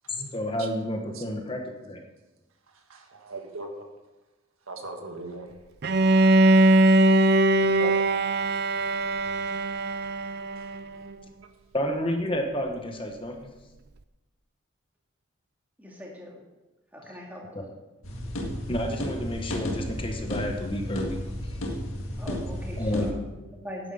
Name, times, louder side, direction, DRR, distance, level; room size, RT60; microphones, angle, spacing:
voice 1, 0.3-2.0 7.8-7.9 11.7-13.5 17.5-17.6 18.7-21.2 22.8-23.1, equal, 25° left, 3 dB, 1.0 m, -30 dB
voice 2, 2.7-3.9 4.7-5.5 6.2-6.3 10.6-10.7, right 2 dB, 85° right, 4 dB, 1.6 m, -40 dB
Bowed string instrument, 5.8-10.8, right 1 dB, 50° right, 0.5 m, -21 dB
voice 3, 15.8-16.4 16.9-17.7 22.2-23.9, equal, 10° right, -2 dB, 2.2 m, -41 dB
sound 1, 18.0-23.1, equal, 85° left, 1.9 m, -33 dB
9.8 x 9.4 x 5.6 m, 1.1 s
head